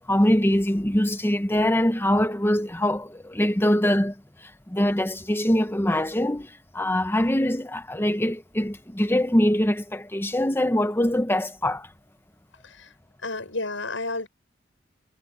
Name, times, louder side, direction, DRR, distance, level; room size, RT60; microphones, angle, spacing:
voice 1, 0.0-4.2 4.7-11.9, left 1 dB, 10° left, 1.2 m, -23 dB
voice 2, 13.2-14.3, left 2 dB, 80° left, 7.0 m, -31 dB
head